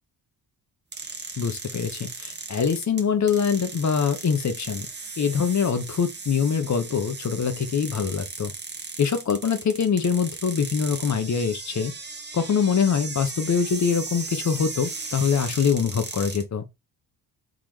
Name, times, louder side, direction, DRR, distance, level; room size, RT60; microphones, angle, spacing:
sound 1, 0.9-16.4, right 4 dB, 25° right, 1.1 m, -37 dB
voice 1, 1.4-4.9 5.2-8.5 9.0-11.9 12.3-16.6, left 6 dB, 40° left, 1.0 m, -24 dB
3.8 x 3.8 x 3.2 m
cardioid pair, 80°, 43 cm